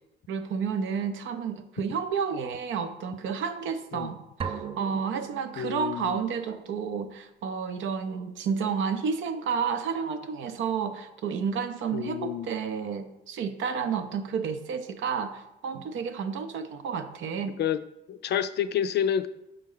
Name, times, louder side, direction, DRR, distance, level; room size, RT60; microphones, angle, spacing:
voice 1, 0.3-17.6, right 6 dB, 75° right, 9 dB, 0.6 m, -31 dB
sound 1, 4.4-6.2, right 7 dB, 30° right, 0.4 m, -38 dB
voice 2, 5.6-6.2 11.9-12.5 17.6-17.8 18.1-19.3, left 9 dB, 60° left, 12 dB, 0.4 m, -29 dB
6.4 x 4.3 x 3.8 m, 0.92 s
cardioid pair, 90°, 20 cm